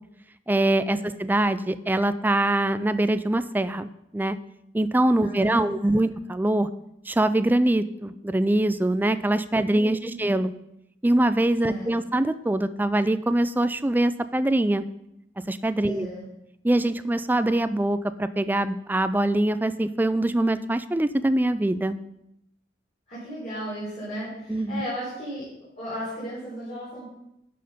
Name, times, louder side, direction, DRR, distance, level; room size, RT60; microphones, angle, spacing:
voice 1, 0.5-4.4 4.7-6.7 7.1-10.5 11.0-14.8 15.5-16.1 16.6-22.0 24.5-24.8, right 1 dB, 10° right, 13 dB, 0.3 m, -23 dB
voice 2, 5.2-5.7 9.7-10.2 11.6-11.9 15.8-16.2 23.1-25.5 25.8-27.1, equal, 40° left, -9 dB, 4.2 m, -35 dB
12.0 x 5.7 x 5.1 m, 0.83 s
head